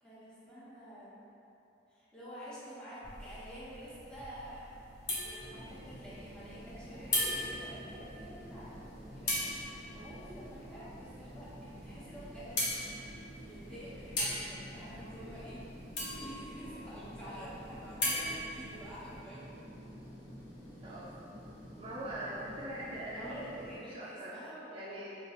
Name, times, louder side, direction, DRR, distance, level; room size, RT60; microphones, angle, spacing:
voice 1, 0.0-1.1 1.9-4.7 5.1-12.6 13.4-15.6 16.1-19.5 20.8-21.0 23.2-25.0, equal, 5° left, -11 dB, 0.8 m, -48 dB
sound 1, 3.0-19.2, left 1 dB, 70° left, 0.9 m, -40 dB
sound 2, 5.4-23.8, equal, 50° left, 1.4 m, -50 dB
voice 2, 20.8-21.1 21.8-23.5 23.9-24.3 24.7-25.1, right 1 dB, 30° right, -8 dB, 0.4 m, -42 dB
4.4 x 2.4 x 2.8 m, 2.9 s
head